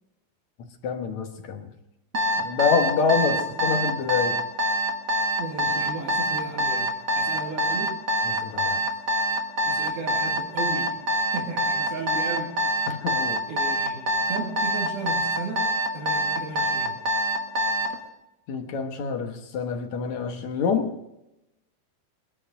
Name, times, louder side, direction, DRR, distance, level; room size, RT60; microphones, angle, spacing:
voice 1, 0.6-1.7 2.4-4.5 8.2-8.8 12.9-13.4 18.5-20.9, left 5 dB, 60° left, 5 dB, 2.3 m, -26 dB
Alarm, 2.1-18.0, right 1 dB, 40° right, 1.6 m, -24 dB
voice 2, 3.2-3.5 5.4-6.9 7.1-8.0 9.7-11.0 11.3-12.6 13.5-17.0, right 4 dB, 90° right, -2 dB, 4.1 m, -35 dB
22.5 x 11.5 x 4.9 m, 0.90 s
omnidirectional pair, 4.2 m